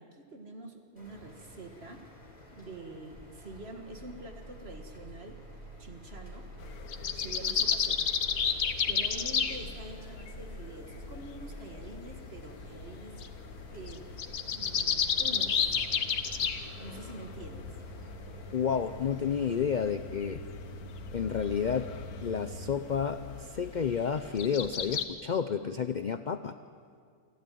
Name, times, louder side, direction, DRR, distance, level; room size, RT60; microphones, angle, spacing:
voice 1, 0.0-2.0 2.5-5.4 5.8-6.5 7.2-8.1 8.9-13.2 13.7-14.1 14.5-15.7 16.8-17.7, right 2 dB, 40° right, 4 dB, 2.0 m, -46 dB
sound 1, 1.0-19.3, left 1 dB, 25° left, 4.7 m, -53 dB
sound 2, 3.2-22.7, right 2 dB, 10° right, 3.8 m, -48 dB
sound 3, 6.6-25.0, left 7 dB, 75° left, 1.6 m, -34 dB
voice 2, 18.5-20.4 21.1-21.9 22.2-26.5, left 7 dB, 60° left, 10 dB, 0.5 m, -30 dB
28.5 x 12.5 x 9.2 m, 2.2 s
omnidirectional pair, 1.6 m